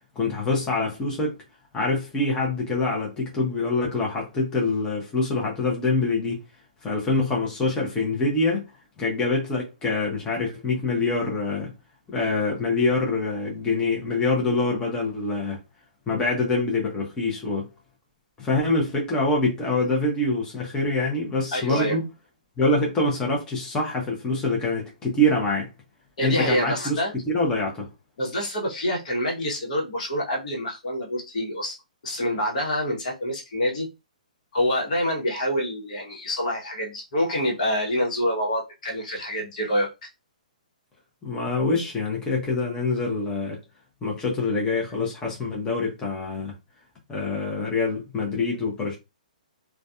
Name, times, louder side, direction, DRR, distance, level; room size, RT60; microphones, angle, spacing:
voice 1, 0.2-1.3 1.7-6.4 6.8-8.7 9.0-11.7 12.1-15.6 16.1-17.7 18.4-22.0 22.6-25.7 26.2-27.0 27.3-27.9 41.2-43.6 44.0-46.5 47.1-49.0, left 2 dB, 15° left, 0.7 m, -25 dB
voice 2, 21.5-22.0 26.2-27.1 28.2-31.8 32.0-33.9 34.5-40.1, equal, 60° left, 1.1 m, -26 dB
2.5 x 2.3 x 2.3 m
figure-of-eight pair, 125°, 4 cm